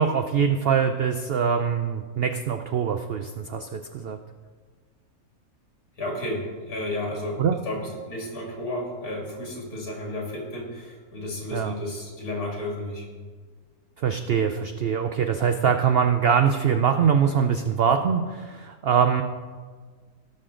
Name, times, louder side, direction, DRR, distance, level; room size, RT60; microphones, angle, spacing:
voice 1, 0.0-4.2 7.4-7.6 11.5-11.7 14.0-19.2, right 7 dB, 70° right, 7 dB, 0.5 m, -23 dB
voice 2, 6.0-13.1, left 1 dB, 70° left, -1 dB, 2.9 m, -32 dB
17.5 x 6.5 x 3.7 m, 1.5 s
omnidirectional pair, 1.6 m